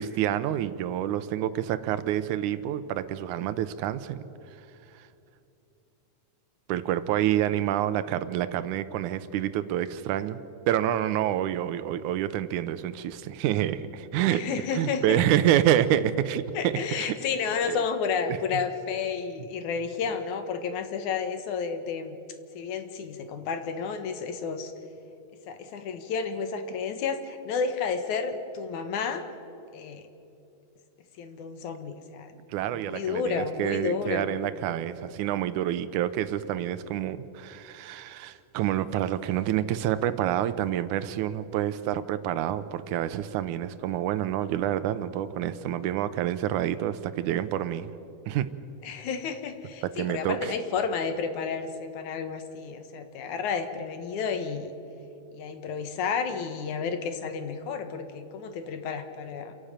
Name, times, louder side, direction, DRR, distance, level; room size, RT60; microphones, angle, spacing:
voice 1, 0.0-4.2 5.0-5.1 6.7-14.5 14.7-17.1 17.7-17.8 18.3-18.4 32.5-47.9 48.3-48.5 50.0-50.5, right 11 dB, 80° right, 13 dB, 2.2 m, -28 dB
voice 2, 14.3-15.2 16.5-22.2 22.5-24.7 25.5-29.3 29.7-30.0 31.2-32.4 32.6-34.3 48.8-54.7 55.3-59.5, left 5 dB, 70° left, 8 dB, 2.7 m, -31 dB
28.5 x 11.5 x 8.9 m, 2.8 s
omnidirectional pair, 3.6 m